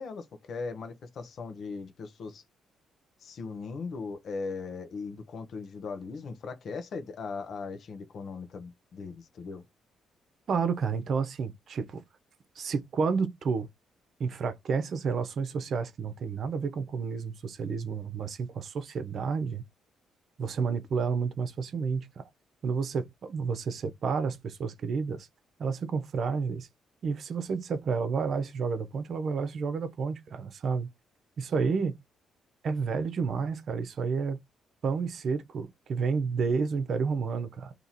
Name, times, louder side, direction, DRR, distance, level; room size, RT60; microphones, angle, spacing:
voice 1, 0.0-2.4 3.2-9.6, left 4 dB, 60° left, 1.0 m, -39 dB
voice 2, 10.5-12.0 12.6-13.7 14.2-19.6 20.4-22.2 22.6-25.3 25.6-26.7 27.0-30.9 31.4-32.0 32.6-34.4 34.8-37.7, right 5 dB, 55° right, 0.8 m, -30 dB
2.9 x 2.9 x 4.0 m
cardioid pair, 90°, 0 cm